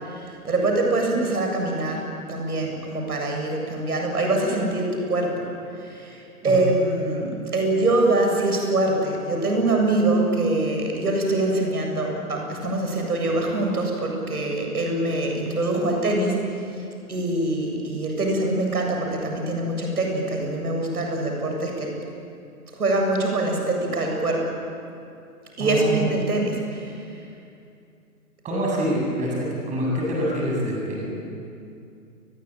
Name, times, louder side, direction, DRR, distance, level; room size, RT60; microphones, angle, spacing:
voice 1, 0.1-2.0 2.3-5.5 5.8-16.4 17.1-21.9 22.7-24.4 25.6-27.0, right 2 dB, 70° right, 1 dB, 7.9 m, -24 dB
voice 2, 25.6-26.0 28.4-31.1, equal, 15° right, -3 dB, 7.8 m, -26 dB
29.5 x 21.5 x 9.1 m, 2.5 s
figure-of-eight pair, 130°, 47 cm